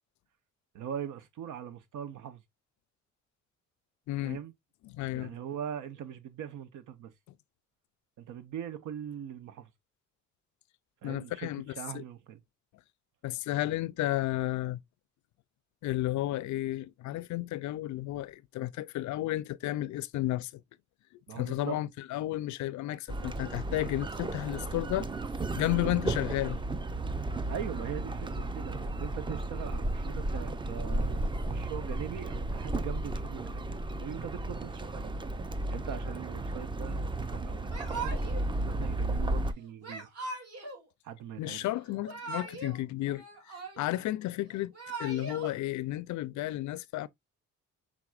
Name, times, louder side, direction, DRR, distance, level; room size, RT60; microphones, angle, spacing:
voice 1, 0.7-2.4 4.2-4.5 5.1-7.1 8.2-9.7 11.0-12.4 21.3-21.8 27.5-35.2 35.4-38.2 38.6-40.1 41.0-41.7, right 9 dB, 80° right, 0.9 m, -41 dB
voice 2, 4.1-4.4 4.8-5.3 11.0-11.6 11.9-12.0 13.2-14.8 15.8-20.5 21.3-25.1 25.5-26.6 41.4-44.7 45.0-47.1, left 15 dB, 70° left, 0.4 m, -32 dB
sound 1, 23.1-39.5, right 2 dB, 15° right, 0.5 m, -34 dB
Yell / Crying sobbing, 37.7-38.5 39.8-40.8 41.9-42.8 43.1-44.0 44.6-45.5, right 3 dB, 55° right, 2.6 m, -40 dB
5.9 x 3.7 x 2.4 m
cardioid pair, 90°, 30 cm